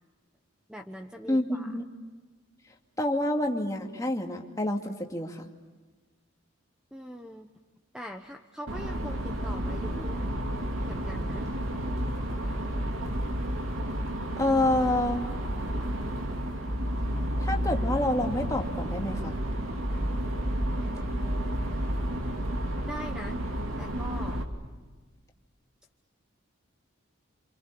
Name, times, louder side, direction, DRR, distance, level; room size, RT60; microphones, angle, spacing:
voice 1, 0.7-1.7 6.9-7.5 7.9-10.2 10.8-11.5 22.8-23.4 23.8-24.4, equal, 5° right, 4 dB, 1.1 m, -42 dB
voice 2, 1.3-1.8 3.0-5.4 14.4-15.3 17.4-19.4, left 1 dB, 15° left, 2 dB, 2.4 m, -28 dB
sound 1, 8.7-24.4, equal, 90° right, 2.9 m, -31 dB
30.0 x 27.5 x 6.9 m, 1.3 s
head